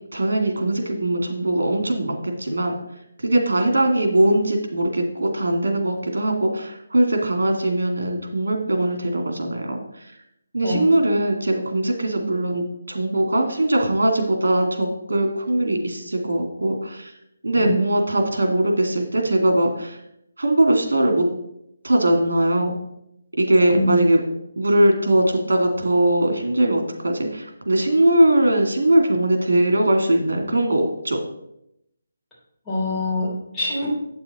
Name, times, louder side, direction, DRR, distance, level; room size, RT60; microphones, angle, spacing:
voice 1, 0.1-2.7 3.2-10.1 10.5-17.1 17.4-20.0 20.4-21.3 21.8-22.7 23.4-24.2 24.6-31.2, right 1 dB, 85° right, 3 dB, 2.4 m, -20 dB
voice 2, 32.6-33.9, left 2 dB, 5° left, -12 dB, 3.8 m, -24 dB
8.7 x 6.8 x 4.2 m, 0.79 s
hypercardioid pair, 170°, 0 cm